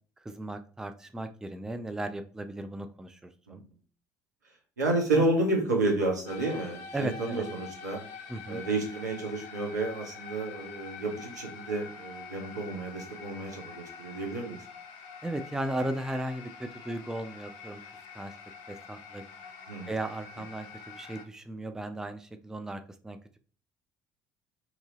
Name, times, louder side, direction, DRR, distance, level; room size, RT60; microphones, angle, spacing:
voice 1, 0.2-3.6 5.1-5.2 6.9-7.5 8.3-8.6 15.2-17.8 18.1-18.3 18.7-19.2 19.9-23.4, right 1 dB, 5° right, 8 dB, 0.3 m, -36 dB
voice 2, 4.8-8.0 8.5-14.6 19.7-19.9, right 2 dB, 80° right, 0 dB, 0.7 m, -30 dB
sound 1, 6.3-21.2, left 5 dB, 60° left, 0.6 m, -46 dB
2.8 x 2.7 x 2.7 m, 0.41 s
figure-of-eight pair, 55°, 9 cm